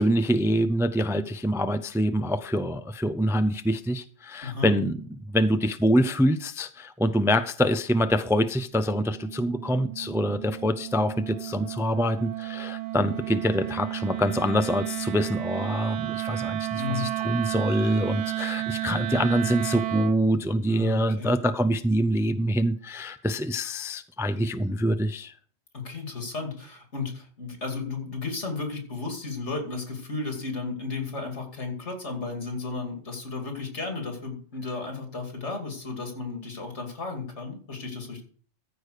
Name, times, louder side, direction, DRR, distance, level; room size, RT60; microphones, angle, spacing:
voice 1, 0.0-5.0 5.3-25.3, equal, 5° right, 0.3 m, -25 dB
voice 2, 4.4-4.7 16.7-17.1 20.7-21.4 25.7-38.2, left 4 dB, 90° left, 3.0 m, -34 dB
Wind instrument woodwind instrument, 8.7-20.2, right 15 dB, 65° right, 0.8 m, -32 dB
14.0 x 5.0 x 6.6 m
omnidirectional pair, 1.1 m